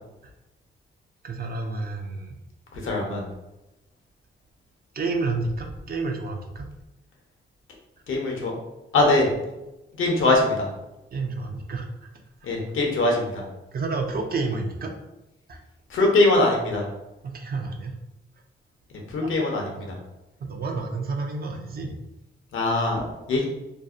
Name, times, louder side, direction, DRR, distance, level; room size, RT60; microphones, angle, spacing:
voice 1, 1.2-2.3 4.9-6.7 11.1-11.9 13.7-14.9 15.5-15.6 17.2-18.0 19.2-19.3 20.5-21.9, right 3 dB, 45° right, 3 dB, 0.4 m, -30 dB
voice 2, 2.8-3.2 8.1-8.5 8.9-9.3 10.0-10.6 12.4-13.4 15.9-16.8 19.1-19.9 22.5-23.4, left 2 dB, 75° left, 0 dB, 0.7 m, -22 dB
2.6 x 2.0 x 2.3 m, 0.97 s
cardioid pair, 65°, 21 cm